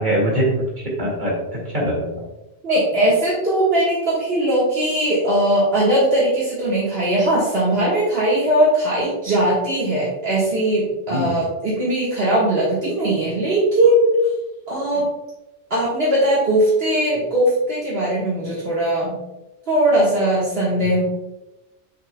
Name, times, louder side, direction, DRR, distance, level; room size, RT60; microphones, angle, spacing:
voice 1, 0.0-2.2 11.1-11.4 14.9-15.1, right 1 dB, 45° right, -4 dB, 2.3 m, -23 dB
voice 2, 2.6-14.2 14.7-15.1 15.7-19.2 19.7-21.0, right 1 dB, 65° right, -8 dB, 1.8 m, -19 dB
6.5 x 6.4 x 2.3 m, 0.97 s
omnidirectional pair, 1.1 m